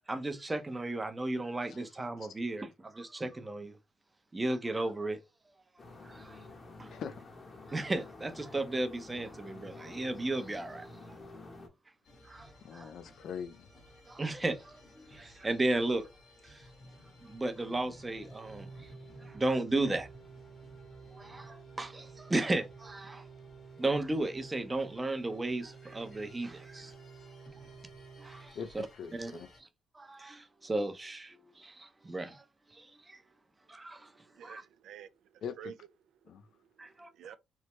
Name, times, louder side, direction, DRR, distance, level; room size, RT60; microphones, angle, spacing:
voice 1, 0.1-3.8 4.3-5.2 6.0-6.4 6.8-6.9 7.7-10.9 12.2-12.9 14.1-16.1 16.4-16.6 17.2-18.9 19.2-20.1 21.1-23.3 23.8-26.9 28.2-28.9 29.1-29.3 29.9-32.4 32.7-33.2 33.7-34.1 34.4-34.6 36.8-37.1, right 2 dB, 20° right, 0.6 m, -35 dB
sound 1, 5.8-11.7, left 2 dB, 35° left, 0.8 m, -50 dB
voice 2, 6.9-7.2 12.6-13.7 28.5-29.5 35.4-35.6 36.3-36.4, left 7 dB, 70° left, 0.4 m, -42 dB
sound 2, 12.0-29.6, left 1 dB, 50° left, 1.1 m, -57 dB
Organ, 18.1-29.0, right 6 dB, 50° right, 0.9 m, -52 dB
voice 3, 34.3-35.8 36.2-36.7 37.1-37.4, right 8 dB, 80° right, 0.3 m, -50 dB
3.2 x 2.0 x 3.0 m
cardioid pair, 90°, 0 cm